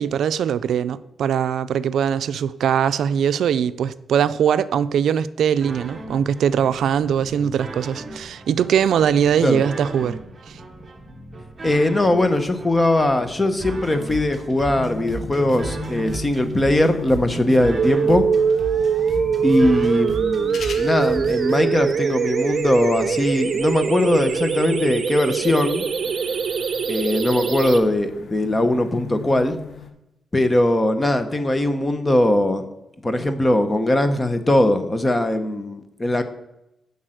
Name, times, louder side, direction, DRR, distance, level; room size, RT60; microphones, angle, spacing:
voice 1, 0.0-10.2 10.5-10.6, right 8 dB, 75° right, 0.4 m, -21 dB
sound 1, 5.6-21.6, right 2 dB, 20° right, 1.3 m, -36 dB
voice 2, 11.6-18.3 19.4-25.8 26.9-29.6 30.3-32.7 33.0-36.2, left 1 dB, 15° left, 0.9 m, -20 dB
sound 2, 14.7-29.9, left 3 dB, 55° left, 1.0 m, -39 dB
sound 3, 17.8-27.8, right 6 dB, 45° right, 0.8 m, -23 dB
7.9 x 5.4 x 7.7 m
wide cardioid pair, 145°, 0 cm